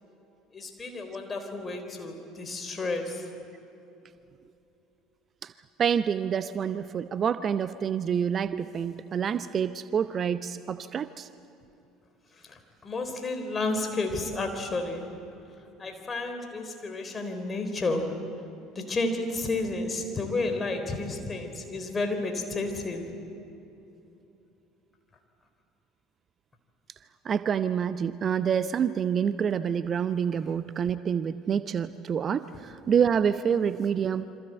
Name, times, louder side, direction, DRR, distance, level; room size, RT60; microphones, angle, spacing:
voice 1, 0.5-3.2 12.5-15.1 15.8-18.2 18.8-23.1, left 2 dB, 25° left, 6 dB, 4.0 m, -31 dB
voice 2, 5.8-11.3 27.2-34.3, right 7 dB, 35° right, 14 dB, 0.7 m, -27 dB
27.5 x 25.0 x 7.9 m, 2.9 s
figure-of-eight pair, 60°, 0 cm